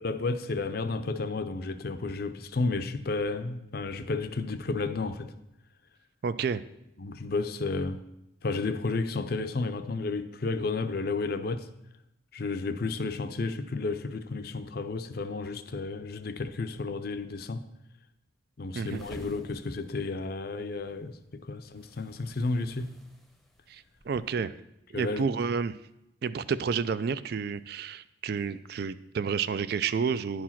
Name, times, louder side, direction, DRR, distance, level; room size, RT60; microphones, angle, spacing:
voice 1, 0.0-5.3 7.0-8.0 8.4-11.7 12.3-17.6 18.6-22.9 24.9-25.3, left 3 dB, 50° left, 10 dB, 0.5 m, -32 dB
voice 2, 6.2-6.6 18.7-19.0 23.7-24.5 24.9-25.8 26.2-30.4, right 6 dB, 50° right, 15 dB, 0.3 m, -30 dB
sound 1, 18.8-24.4, equal, ahead, 0.7 m, -52 dB
10.5 x 4.8 x 5.7 m, 0.84 s
head